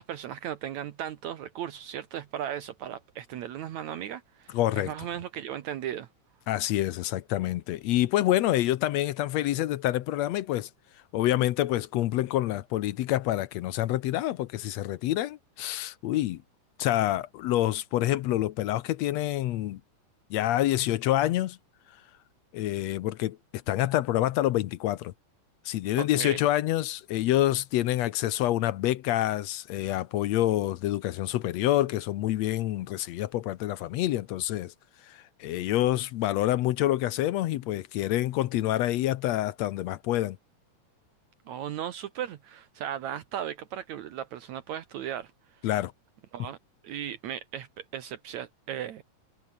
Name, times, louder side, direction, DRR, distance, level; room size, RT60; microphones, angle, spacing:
voice 1, 0.0-6.1 26.0-26.4 41.5-45.3 46.3-46.6 46.8-49.0, right 10 dB, 70° right, 2.4 m, -36 dB
voice 2, 4.5-4.9 6.5-10.7 11.1-16.4 16.8-19.8 20.3-21.6 22.5-23.4 23.7-25.1 25.7-34.7 35.1-40.4 45.6-45.9, left 14 dB, 70° left, 1.8 m, -27 dB
omnidirectional pair, 3.5 m